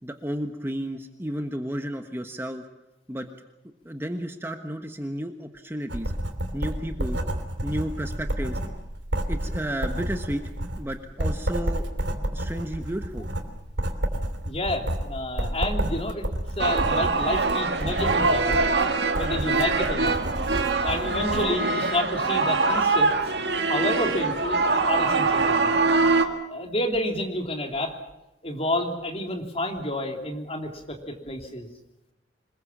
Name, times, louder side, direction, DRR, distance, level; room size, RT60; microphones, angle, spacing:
voice 1, 0.0-2.6 3.1-6.1 6.5-7.2 7.6-8.6 9.3-10.4 10.8-11.9 12.3-13.3, equal, 15° right, 5 dB, 1.3 m, -32 dB
Writing, 5.9-21.5, right 1 dB, 85° right, 3.1 m, -30 dB
voice 2, 14.4-16.3 16.6-18.6 19.1-20.1 20.8-23.1 23.7-25.8 26.5-27.9 28.4-31.7, left 1 dB, 35° left, 3 dB, 3.1 m, -29 dB
sound 1, 16.6-26.3, right 3 dB, 70° right, 2.0 m, -23 dB
26.5 x 21.0 x 7.3 m, 0.91 s
head